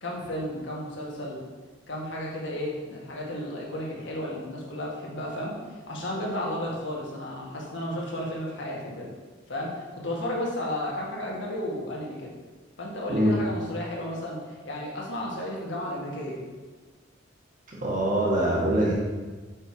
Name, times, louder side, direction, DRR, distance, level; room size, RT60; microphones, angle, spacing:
voice 1, 0.0-1.4 1.9-5.6 5.9-9.1 9.5-12.3 12.8-16.4, left 1 dB, 70° left, -3 dB, 1.9 m, -33 dB
voice 2, 17.8-18.9, right 1 dB, 45° right, -5 dB, 2.1 m, -23 dB
6.6 x 5.6 x 4.9 m, 1.4 s
head